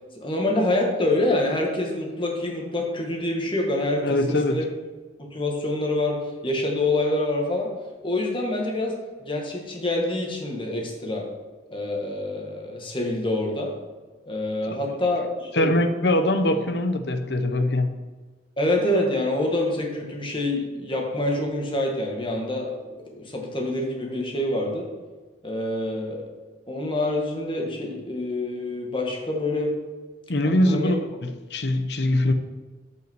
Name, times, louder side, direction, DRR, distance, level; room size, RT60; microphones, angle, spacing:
voice 1, 0.2-4.6 5.2-7.7 8.0-11.3 11.7-13.7 14.3-15.7 18.6-22.7 23.2-24.9 25.4-26.2 26.7-29.7 30.7-30.9, left 1 dB, 30° left, 0 dB, 1.9 m, -26 dB
voice 2, 4.0-4.6 15.5-18.0 30.3-32.3, left 1 dB, 65° left, 9 dB, 0.9 m, -22 dB
13.5 x 5.6 x 4.7 m, 1.3 s
head